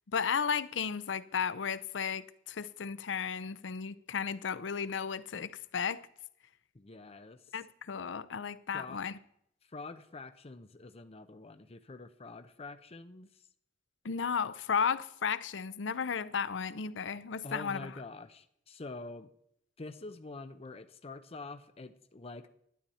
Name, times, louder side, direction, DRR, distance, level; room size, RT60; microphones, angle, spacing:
voice 1, 0.1-6.0 7.5-9.1 14.0-17.9, left 6 dB, 85° left, 0.6 m, -34 dB
voice 2, 6.7-7.4 8.7-9.0 9.7-13.3 17.4-19.3 19.8-22.5, left 3 dB, 35° left, 0.7 m, -46 dB
12.0 x 10.5 x 4.2 m
head